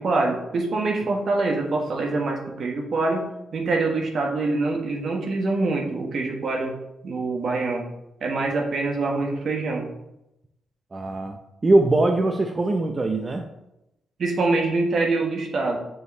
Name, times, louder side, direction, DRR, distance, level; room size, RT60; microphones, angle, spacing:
voice 1, 0.0-3.3 3.5-6.7 7.0-7.8 8.2-9.9 14.2-15.8, right 3 dB, 65° right, 1 dB, 1.3 m, -25 dB
voice 2, 10.9-11.4 11.6-13.4, right 2 dB, 35° right, 4 dB, 0.6 m, -21 dB
6.7 x 4.8 x 3.2 m, 0.89 s
supercardioid pair, 55°, 0 cm